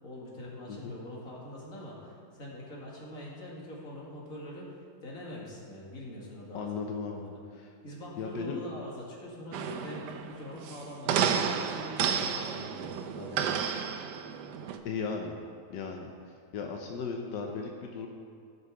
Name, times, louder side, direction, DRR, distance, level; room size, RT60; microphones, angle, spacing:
voice 1, 0.0-6.8 7.1-13.7, left 1 dB, 55° left, -4 dB, 2.5 m, -43 dB
voice 2, 6.5-7.2 7.6-7.7 8.2-8.6 14.8-15.4 15.7-16.1 16.5-18.1, left 5 dB, 90° left, 2 dB, 1.4 m, -36 dB
sound 1, 9.5-14.8, right 7 dB, 80° right, 1.2 m, -31 dB
15.5 x 5.6 x 4.8 m, 2.2 s
omnidirectional pair, 1.8 m